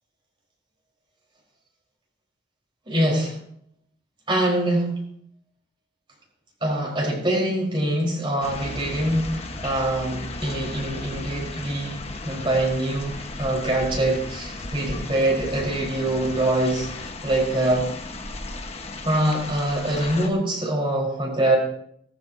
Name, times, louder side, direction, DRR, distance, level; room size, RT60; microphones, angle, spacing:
voice 1, 2.9-3.3 4.3-4.9 6.6-16.9 17.2-17.9 19.0-21.6, right 1 dB, 30° right, -2 dB, 4.6 m, -24 dB
sound 1, 8.4-20.3, left 2 dB, 35° left, 1.4 m, -35 dB
18.0 x 14.5 x 2.8 m, 0.69 s
head